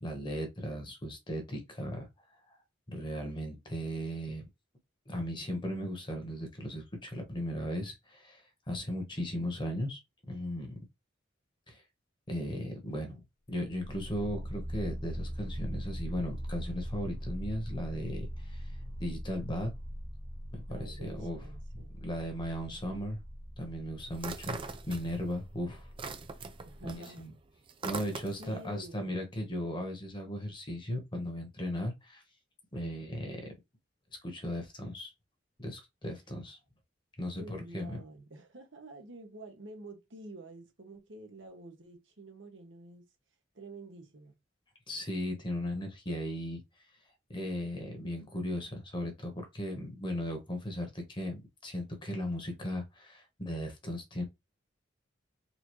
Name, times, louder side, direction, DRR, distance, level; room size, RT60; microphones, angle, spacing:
voice 1, 0.0-2.1 2.5-2.6 2.9-4.4 5.1-10.0 10.3-10.8 11.7-11.8 12.3-18.6 19.0-19.7 20.5-21.4 22.0-23.2 23.6-24.6 24.9-25.9 26.8-27.3 27.8-32.2 32.7-33.5 34.2-35.1 35.6-36.6 37.2-38.0 44.9-46.6 47.3-54.2, equal, 25° left, 1.2 m, -37 dB
sound 1, 13.6-27.0, equal, 50° right, 1.3 m, -41 dB
voice 2, 20.7-22.0 26.6-27.2 28.4-29.2 32.7-33.3 37.4-43.1 43.5-44.4, right 2 dB, 75° right, 1.1 m, -49 dB
Puffy Chips Falling On Table, 24.1-25.4 25.7-28.6, right 4 dB, 25° right, 0.4 m, -41 dB
4.1 x 2.7 x 3.1 m
head